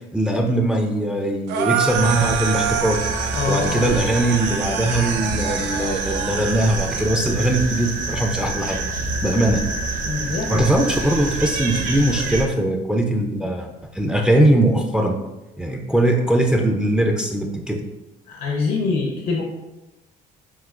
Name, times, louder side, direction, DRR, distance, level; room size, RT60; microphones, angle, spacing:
voice 1, 0.1-3.0 3.4-8.8 9.2-9.6 10.5-15.2 15.6-17.8, right 1 dB, 5° right, 3 dB, 0.4 m, -20 dB
sound 1, 1.5-7.1, right 8 dB, 80° right, 0.4 m, -27 dB
sound 2, 1.9-12.5, right 3 dB, 50° right, 0.7 m, -27 dB
voice 2, 3.3-3.8 10.0-10.6 18.3-19.4, left 4 dB, 65° left, 0 dB, 0.6 m, -24 dB
5.7 x 2.6 x 2.5 m, 1.0 s
cardioid pair, 110°, 17 cm